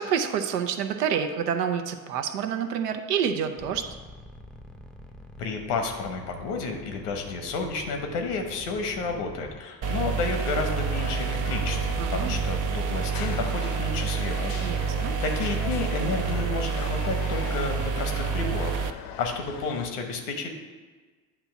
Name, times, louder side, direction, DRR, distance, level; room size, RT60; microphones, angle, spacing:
voice 1, 0.0-4.0 12.0-12.4 14.6-15.1, right 7 dB, 80° right, 7 dB, 0.7 m, -28 dB
sound 1, 3.6-9.6, left 1 dB, ahead, 0.5 m, -45 dB
voice 2, 5.4-11.8 12.1-14.5 15.2-18.8 19.2-20.5, left 4 dB, 80° left, 4 dB, 1.1 m, -31 dB
sound 2, 9.8-19.9, left 7 dB, 50° left, 0.7 m, -38 dB
sound 3, 9.8-18.9, right 7 dB, 45° right, 0.5 m, -28 dB
8.7 x 2.9 x 5.8 m, 1.4 s
hypercardioid pair, 65°, 47 cm